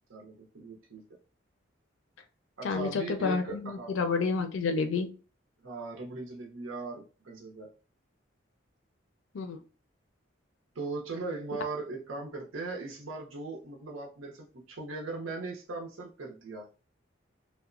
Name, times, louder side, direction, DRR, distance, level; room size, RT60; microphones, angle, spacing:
voice 1, 0.1-1.0 2.6-3.9 5.6-7.7 10.7-16.7, right 3 dB, 90° right, 0 dB, 0.7 m, -39 dB
voice 2, 2.6-5.1 9.3-9.6, left 4 dB, 80° left, 6 dB, 0.4 m, -29 dB
2.9 x 2.1 x 2.4 m, 0.35 s
head